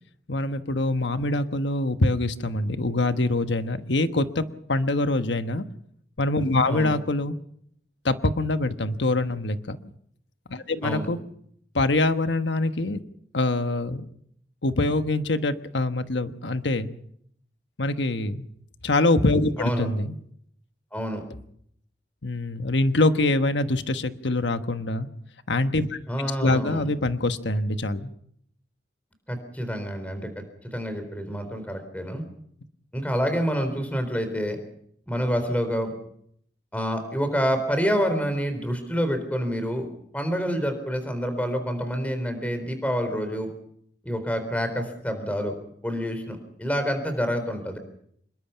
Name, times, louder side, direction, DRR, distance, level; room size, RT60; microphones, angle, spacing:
voice 1, 0.3-4.4 4.7-5.6 6.2-7.3 8.0-9.8 10.5-11.2 11.7-13.0 13.3-14.0 14.6-16.9 17.8-18.5 18.8-20.2 22.2-25.1 25.5-26.0 26.4-28.1, left 2 dB, 85° left, 9 dB, 1.3 m, -24 dB
voice 2, 19.6-19.9 20.9-21.2 26.1-26.9 29.3-30.4 30.7-32.2 32.9-34.6 35.1-35.9 36.7-39.8 40.1-43.5 44.0-45.5 45.8-47.8, equal, 10° left, 8 dB, 3.9 m, -27 dB
26.0 x 21.5 x 5.7 m, 0.67 s
head